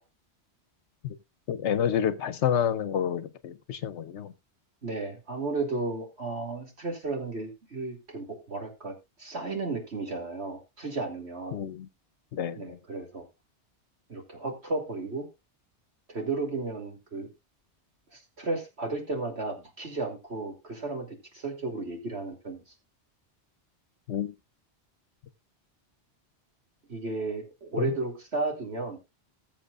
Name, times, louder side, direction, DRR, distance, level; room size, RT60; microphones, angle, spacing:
voice 1, 1.5-4.3 11.5-11.9 12.3-12.8 24.1-24.3 27.8-27.9, left 9 dB, 80° left, 1.0 m, -29 dB
voice 2, 4.8-11.6 12.5-13.2 14.1-15.3 16.1-17.3 18.1-22.6 26.9-29.0, right 3 dB, 70° right, 3.0 m, -34 dB
20.0 x 7.2 x 2.4 m
omnidirectional pair, 1.2 m